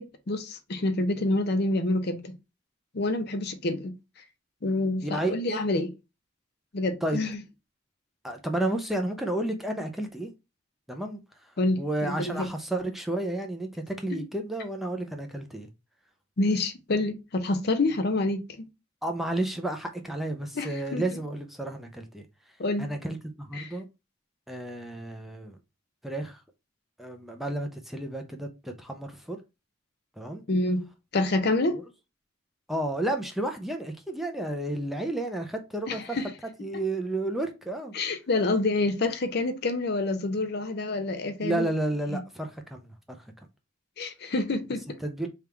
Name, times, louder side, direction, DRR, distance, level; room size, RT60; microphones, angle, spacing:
voice 1, 0.0-2.3 2.9-3.9 4.6-5.9 6.7-7.4 11.6-12.5 14.1-14.2 16.4-18.4 20.6-21.0 22.6-22.9 23.5-23.7 30.5-30.9 31.1-31.8 35.9-36.3 37.9-41.7 44.0-45.0, left 2 dB, 55° left, 0.6 m, -27 dB
voice 2, 5.0-5.6 7.0-7.2 8.2-10.3 10.9-11.2 11.8-15.7 19.0-22.2 22.8-23.9 24.5-25.6 26.0-26.4 27.0-29.4 30.2-30.4 32.7-36.2 36.6-37.9 41.4-42.9 45.0-45.3, right 1 dB, ahead, 0.5 m, -31 dB
3.5 x 2.4 x 4.4 m
head